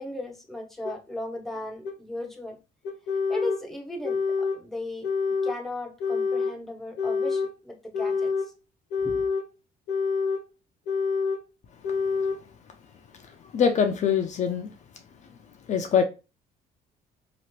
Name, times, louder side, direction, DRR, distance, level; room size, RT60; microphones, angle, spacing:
voice 1, 0.0-2.6 3.3-5.1 5.4-8.3 9.0-9.1, left 1 dB, ahead, 0.7 m, -36 dB
sound 1, 0.8-1.0 1.8-2.0 2.8-3.6 4.0-4.6 5.0-5.6 6.0-6.6 7.0-7.5 7.9-8.5 8.9-9.5 9.9-10.4 10.9-11.4 11.8-12.4, left 5 dB, 90° left, 0.9 m, -27 dB
voice 2, 13.2-14.7 15.7-16.0, left 7 dB, 45° left, 0.4 m, -24 dB
2.9 x 2.4 x 2.9 m
cardioid pair, 110°, 17 cm